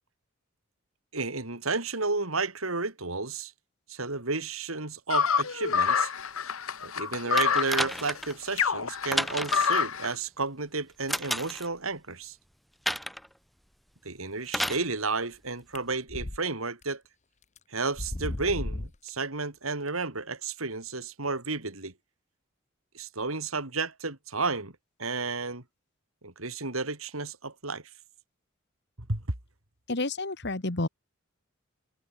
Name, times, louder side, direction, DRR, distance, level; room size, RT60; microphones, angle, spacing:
voice 1, 1.1-3.5 3.9-6.1 6.8-12.4 14.0-17.0 17.7-21.9 22.9-24.7 25.0-25.6 26.2-27.8 29.1-29.2, right 3 dB, 90° right, 3.9 m, -32 dB
sound 1, 5.1-10.1, left 6 dB, 85° left, 1.2 m, -27 dB
sound 2, 7.4-8.4 9.1-9.8 11.1-11.7 12.9-13.3 14.5-14.9 15.9-16.0, equal, ahead, 3.1 m, -31 dB
sound 3, 15.8-16.4 16.8-16.9 17.6-17.7 17.9-19.1, left 1 dB, 35° left, 1.2 m, -34 dB
voice 2, 29.9-30.9, left 2 dB, 55° left, 2.1 m, -30 dB
head